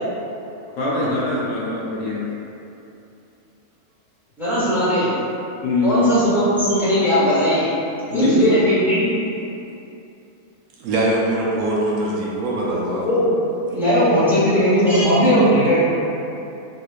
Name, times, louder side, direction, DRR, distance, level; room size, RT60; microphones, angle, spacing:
voice 1, 0.8-2.2 5.6-6.0 8.1-8.5, left 2 dB, 65° left, -7 dB, 0.9 m, -22 dB
voice 2, 4.4-5.1 5.8-7.7 8.1-9.1 13.0-13.3 13.7-15.8, equal, ahead, -12 dB, 1.2 m, -18 dB
voice 3, 10.8-13.0, right 1 dB, 75° right, -4 dB, 1.0 m, -22 dB
3.4 x 3.0 x 2.4 m, 2.8 s
omnidirectional pair, 1.6 m